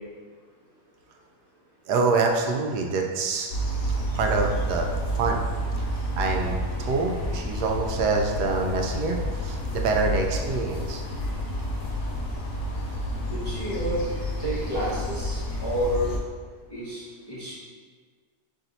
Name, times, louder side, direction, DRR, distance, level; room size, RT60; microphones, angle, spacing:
voice 1, 1.9-3.5 4.1-4.9 5.1-5.4 5.7-5.9 6.1-11.0, right 3 dB, 80° right, 2 dB, 1.2 m, -26 dB
sound 1, 3.5-16.2, equal, 55° left, 1.0 m, -30 dB
voice 2, 13.3-14.0 14.4-16.1 16.7-17.5, equal, 20° left, -8 dB, 0.7 m, -30 dB
4.1 x 3.1 x 3.9 m, 1.5 s
omnidirectional pair, 1.7 m